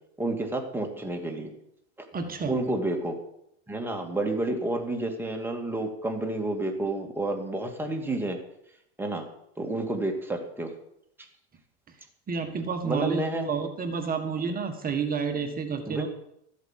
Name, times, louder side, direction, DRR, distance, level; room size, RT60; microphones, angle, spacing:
voice 1, 0.2-1.5 2.5-3.1 3.7-8.4 9.0-9.3 9.6-10.7 12.8-13.5 15.8-16.1, right 2 dB, 5° right, 2 dB, 2.4 m, -30 dB
voice 2, 2.1-2.6 12.3-16.1, right 5 dB, 25° right, 5 dB, 1.6 m, -30 dB
13.5 x 8.4 x 7.5 m, 0.76 s
supercardioid pair, 125°, 35 cm